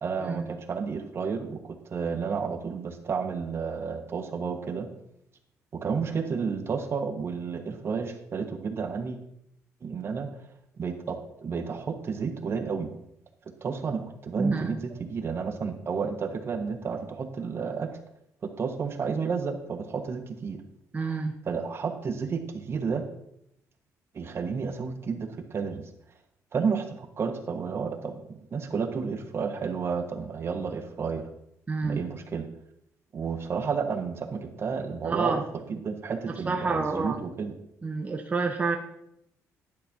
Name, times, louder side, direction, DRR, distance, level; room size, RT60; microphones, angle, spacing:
voice 1, 0.0-4.9 5.7-9.2 9.8-10.3 10.8-12.9 13.6-17.9 18.4-20.6 21.4-23.0 24.1-25.8 26.5-31.2 31.8-32.5 33.1-35.4 35.7-37.5, right 5 dB, 45° right, 7 dB, 1.1 m, -31 dB
voice 2, 14.4-14.7 20.9-21.3 31.7-32.0 35.0-35.4 36.5-37.2 37.8-38.8, right 4 dB, 25° right, 3 dB, 0.9 m, -28 dB
11.0 x 4.1 x 5.9 m, 0.77 s
cardioid pair, 100°, 6 cm